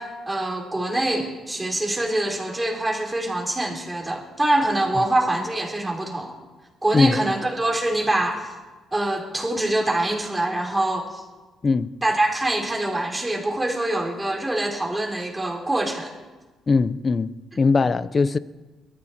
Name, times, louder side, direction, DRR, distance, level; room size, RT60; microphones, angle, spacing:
voice 1, 0.0-6.3 6.8-8.5 8.9-11.2 12.0-16.1 17.5-17.6, right 1 dB, 15° right, 3.9 m, -24 dB
voice 2, 6.9-7.2 11.6-11.9 16.7-18.4, left 4 dB, 35° left, 0.7 m, -20 dB
21.5 x 14.0 x 4.3 m
cardioid pair, 90°, 0 cm